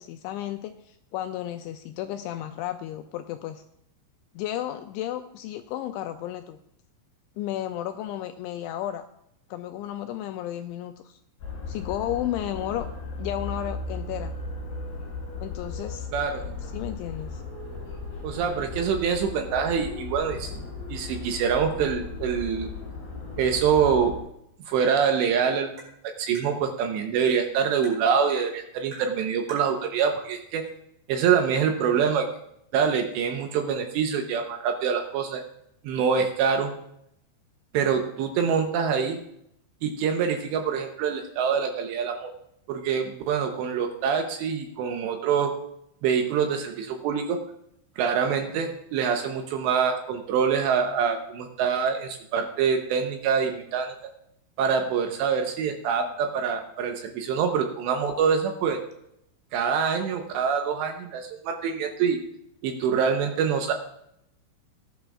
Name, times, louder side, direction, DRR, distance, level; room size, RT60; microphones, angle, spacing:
voice 1, 0.0-3.6 4.4-6.6 7.4-9.1 9.5-11.2 11.7-12.9 13.2-14.4 15.4-16.1 16.7-17.4, left 12 dB, 85° left, 7 dB, 2.7 m, -33 dB
sound 1, 11.4-24.2, left 3 dB, 50° left, 5.9 m, -36 dB
voice 2, 16.1-16.4 18.2-20.5 20.9-22.7 23.4-24.2 24.7-25.7 26.2-30.6 31.1-32.3 32.7-35.4 35.8-36.7 37.7-39.2 39.8-42.3 42.7-45.5 46.0-47.4 48.0-53.9 54.6-58.8 59.5-62.2 62.6-63.7, right 6 dB, 80° right, 5 dB, 2.8 m, -25 dB
Tap, 25.8-25.9 26.4-26.5 27.2-27.4 27.8-28.0 28.9-29.1 29.5-29.7 30.6-30.7 31.2-31.3, right 1 dB, 50° right, 7.0 m, -44 dB
18.0 x 11.5 x 2.4 m, 0.76 s
omnidirectional pair, 5.6 m